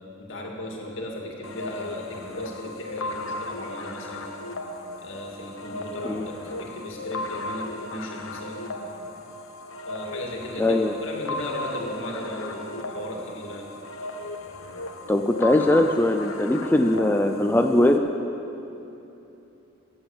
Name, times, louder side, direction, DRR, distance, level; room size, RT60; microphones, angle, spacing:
voice 1, 0.2-4.3 5.0-8.7 9.9-13.7, left 1 dB, 65° left, 0 dB, 2.3 m, -36 dB
sound 1, 1.4-18.0, left 2 dB, 85° left, 1.0 m, -36 dB
voice 2, 10.6-10.9 15.1-18.0, left 1 dB, 10° left, 4 dB, 0.4 m, -21 dB
15.5 x 8.8 x 7.2 m, 2.9 s
head